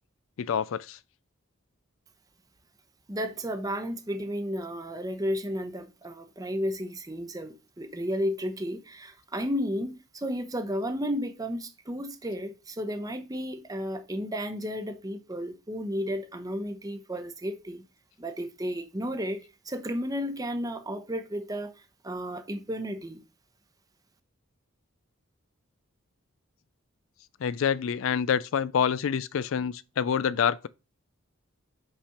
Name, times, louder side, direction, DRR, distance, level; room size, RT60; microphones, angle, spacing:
voice 1, 0.4-1.0 27.4-30.7, left 7 dB, 65° left, 0.4 m, -27 dB
voice 2, 3.1-17.8 18.2-21.7 22.0-23.2, equal, 15° right, 0.8 m, -33 dB
5.6 x 5.1 x 5.7 m
head